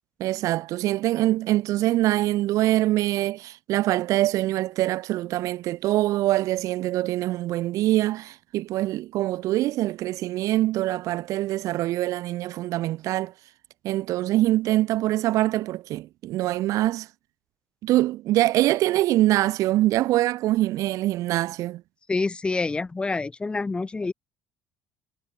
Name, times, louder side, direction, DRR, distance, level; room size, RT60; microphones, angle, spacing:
voice 1, 0.2-13.3 13.8-17.1 17.8-21.8, right 16 dB, 65° right, 1.0 m, -24 dB
voice 2, 22.1-24.1, left 3 dB, 15° left, 0.9 m, -27 dB
cardioid pair, 105°, 6 cm